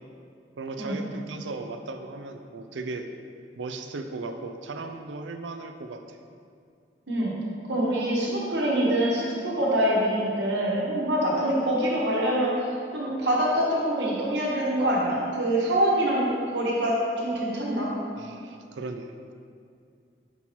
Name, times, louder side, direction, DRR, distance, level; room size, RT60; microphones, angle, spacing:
voice 1, 0.6-3.1 3.6-6.2 18.2-19.3, right 3 dB, 90° right, 6 dB, 0.4 m, -37 dB
voice 2, 7.7-12.5 12.9-17.9, right 1 dB, 75° right, -4 dB, 1.3 m, -25 dB
5.6 x 4.4 x 4.3 m, 2.3 s
head